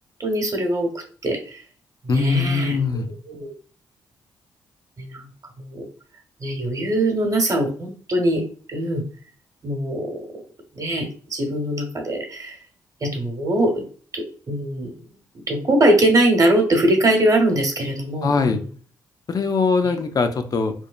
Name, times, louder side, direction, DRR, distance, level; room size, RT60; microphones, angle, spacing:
voice 1, 0.2-1.6 2.0-3.5 5.0-5.3 5.6-5.9 6.4-8.4 8.7-9.0 9.6-10.2 10.7-12.6 13.0-13.8 14.1-14.9 15.5-18.6 19.8-19.9, right 1 dB, 40° right, 2 dB, 0.9 m, -22 dB
voice 2, 2.1-3.1 18.2-18.6 19.3-20.7, left 4 dB, 40° left, 8 dB, 0.4 m, -21 dB
3.1 x 2.1 x 2.3 m, 0.43 s
hypercardioid pair, 40°, 9 cm